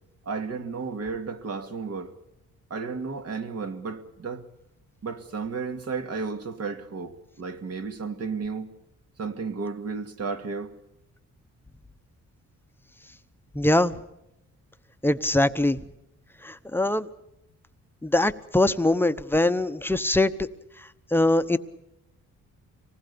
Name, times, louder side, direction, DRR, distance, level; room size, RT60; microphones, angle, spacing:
voice 1, 0.3-2.1 2.7-4.5 5.0-8.7 9.2-10.7, right 4 dB, 50° right, 7 dB, 2.3 m, -33 dB
voice 2, 13.5-13.9 15.0-15.8 16.4-17.1 18.0-20.5 21.1-21.6, left 1 dB, 5° left, 11 dB, 0.9 m, -22 dB
25.5 x 19.5 x 6.9 m, 0.85 s
cardioid pair, 110°, 30 cm